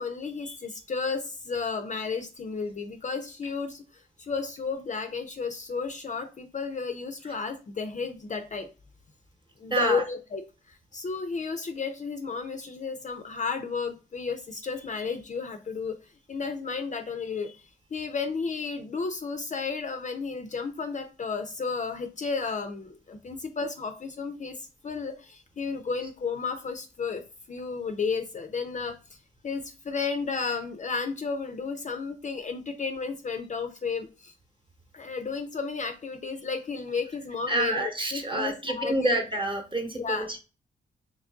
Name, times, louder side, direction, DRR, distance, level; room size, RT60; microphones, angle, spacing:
voice 1, 0.0-8.7 9.6-16.0 16.3-17.6 17.9-27.2 27.5-29.2 29.4-34.3 34.9-39.2 40.0-40.3, left 5 dB, 40° left, 7 dB, 0.4 m, -33 dB
voice 2, 9.7-10.0 37.5-40.4, right 2 dB, 25° right, 4 dB, 0.9 m, -28 dB
3.0 x 2.5 x 3.5 m, 0.32 s
cardioid pair, 75°, 20 cm